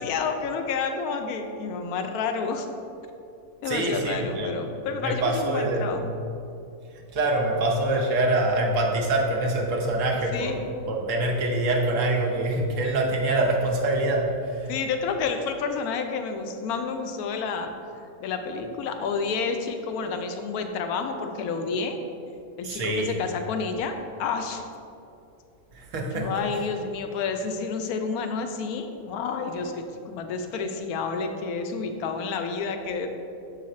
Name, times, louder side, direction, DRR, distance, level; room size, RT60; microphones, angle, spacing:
voice 1, 0.0-2.7 3.6-6.1 10.3-10.6 14.7-17.7 18.2-22.0 22.6-24.6 26.1-33.1, left 5 dB, 80° left, 6 dB, 1.1 m, -30 dB
voice 2, 3.7-4.6 5.0-6.1 6.9-14.7 22.6-23.2 25.7-26.4, right 2 dB, 60° right, 0 dB, 1.1 m, -25 dB
6.8 x 3.9 x 4.2 m, 2.6 s
omnidirectional pair, 1.6 m